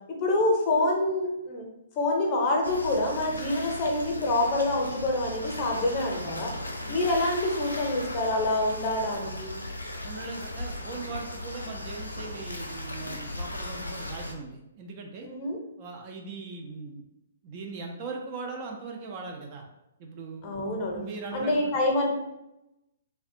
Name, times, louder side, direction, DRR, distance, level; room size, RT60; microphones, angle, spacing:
voice 1, 0.1-1.6 2.0-6.5 6.9-9.6 15.2-15.6 20.4-21.0 21.3-22.1, left 2 dB, 30° left, 0 dB, 0.6 m, -26 dB
sound 1, 2.6-14.3, left 1 dB, 85° left, 0.4 m, -37 dB
voice 2, 10.0-15.3 15.8-17.0 17.4-19.6 20.0-20.5 20.8-21.8, right 4 dB, 35° right, 2 dB, 0.4 m, -39 dB
2.3 x 2.1 x 2.6 m, 0.90 s
figure-of-eight pair, 125°, 0 cm